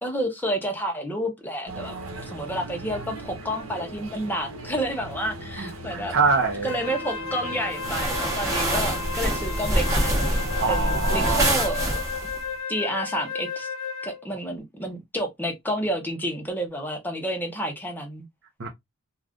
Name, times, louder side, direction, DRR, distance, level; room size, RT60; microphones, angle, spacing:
voice 1, 0.0-2.0 2.3-6.1 6.6-12.1 12.7-13.7 14.0-18.2, equal, 10° left, 0.8 m, -30 dB
sound 1, 1.7-11.7, right 1 dB, 80° right, 1.0 m, -38 dB
voice 2, 5.6-6.7 8.4-8.6 10.6-11.7 18.6-18.7, right 4 dB, 65° right, 0.6 m, -25 dB
Wind instrument woodwind instrument, 6.6-14.3, left 5 dB, 85° left, 0.4 m, -34 dB
sound 2, 7.8-12.4, right 1 dB, 15° right, 1.0 m, -25 dB
2.5 x 2.4 x 3.4 m
head